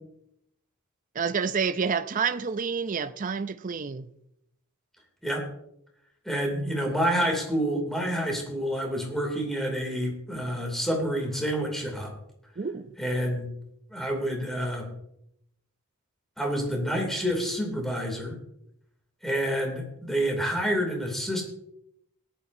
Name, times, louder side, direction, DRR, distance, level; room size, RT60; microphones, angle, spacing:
voice 1, 1.1-4.1 12.6-12.9, right 6 dB, 35° right, 0.5 m, -28 dB
voice 2, 6.2-12.1 13.0-13.5 13.9-14.9 16.4-18.4 19.2-21.4, equal, ahead, 2.6 m, -28 dB
17.5 x 11.0 x 2.7 m
head